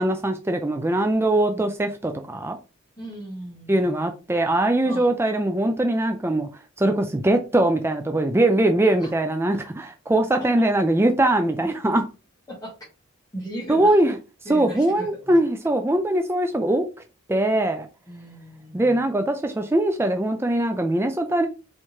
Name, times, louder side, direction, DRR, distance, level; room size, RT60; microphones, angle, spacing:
voice 1, 0.0-2.6 3.7-6.5 6.8-12.0 13.7-14.1 14.5-16.9 17.3-17.9 18.7-21.5, right 1 dB, 10° right, 0.4 m, -21 dB
voice 2, 1.4-1.7 3.0-3.9 4.8-5.1 8.8-9.1 9.4-9.6 10.4-10.5 12.5-12.8 13.3-14.0 14.4-15.4 18.1-19.1, right 1 dB, 15° left, 1.5 m, -38 dB
4.4 x 3.5 x 3.1 m
head